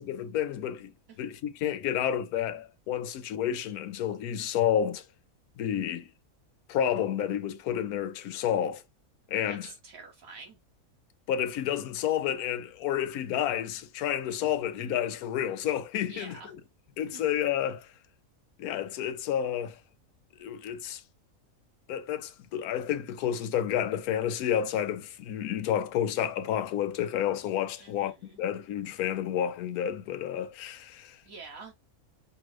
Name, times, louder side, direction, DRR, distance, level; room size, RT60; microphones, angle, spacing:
voice 1, 0.0-0.9 1.2-5.0 5.6-6.1 6.7-8.8 9.3-9.7 11.3-16.6 17.0-17.9 18.6-19.8 20.4-21.0 21.9-31.2, left 10 dB, 85° left, 1.1 m, -30 dB
voice 2, 9.5-10.6 16.1-16.5 17.1-17.2 27.8-28.4 31.2-31.7, right 4 dB, 70° right, 1.3 m, -47 dB
5.2 x 2.5 x 3.1 m
omnidirectional pair, 1.5 m